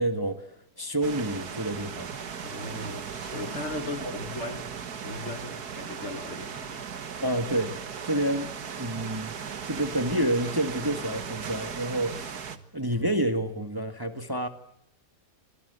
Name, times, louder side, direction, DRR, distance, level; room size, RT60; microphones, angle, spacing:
voice 1, 0.0-2.1 4.0-4.1 7.2-7.7 8.0-9.4 9.7-12.4 12.7-14.5, right 1 dB, 15° right, 1.7 m, -29 dB
sound 1, 1.0-12.6, right 6 dB, 80° right, 2.1 m, -37 dB
voice 2, 2.4-6.8, left 2 dB, 45° left, 2.3 m, -38 dB
27.0 x 26.5 x 8.2 m
omnidirectional pair, 1.7 m